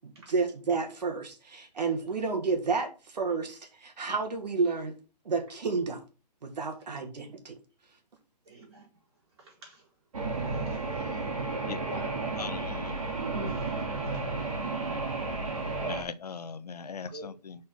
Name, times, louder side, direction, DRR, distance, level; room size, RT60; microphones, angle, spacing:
voice 1, 0.0-4.9 5.3-6.0 6.4-7.6, right 4 dB, 80° right, 1.7 m, -31 dB
voice 2, 8.5-8.9 9.4-9.8 10.5-11.1 11.8-12.1 13.3-13.7 14.1-14.2 17.1-17.3, right 1 dB, 40° right, 4.4 m, -44 dB
sound 1, 10.1-16.0, right 3 dB, 55° right, 2.8 m, -32 dB
voice 3, 12.4-12.9 15.9-17.5, left 6 dB, 70° left, 0.7 m, -39 dB
6.1 x 4.3 x 5.9 m
hypercardioid pair, 180°, 21 cm